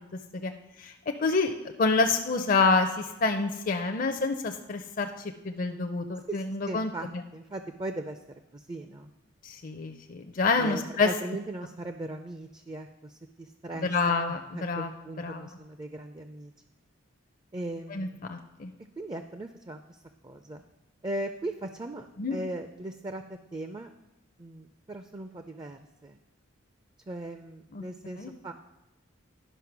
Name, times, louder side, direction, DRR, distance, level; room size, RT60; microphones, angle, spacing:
voice 1, 1.2-1.5 1.8-5.1 5.4-6.9 9.4-11.1 13.8-14.9 15.2-15.5 17.9-18.7 22.2-22.4 27.7-27.8 28.2-28.3, left 4 dB, 40° left, 5 dB, 0.5 m, -27 dB
voice 2, 6.3-8.2 8.5-9.1 10.6-16.5 17.5-18.2 19.0-20.6 21.0-23.9 24.4-26.2 27.1-28.5, right 1 dB, 20° right, 8 dB, 0.4 m, -39 dB
11.0 x 5.5 x 5.9 m, 1.0 s
head